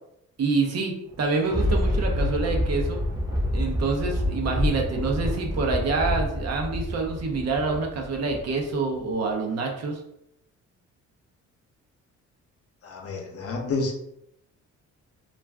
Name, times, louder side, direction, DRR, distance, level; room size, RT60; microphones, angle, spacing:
voice 1, 0.4-3.0 3.5-10.0, right 3 dB, 55° right, 1 dB, 0.7 m, -27 dB
Thunder, 1.1-8.6 9.1-9.2, left 1 dB, 15° right, 0.8 m, -27 dB
voice 2, 12.8-14.0, left 3 dB, 50° left, 1 dB, 0.7 m, -29 dB
2.4 x 2.2 x 3.4 m, 0.77 s
cardioid pair, 90°, 30 cm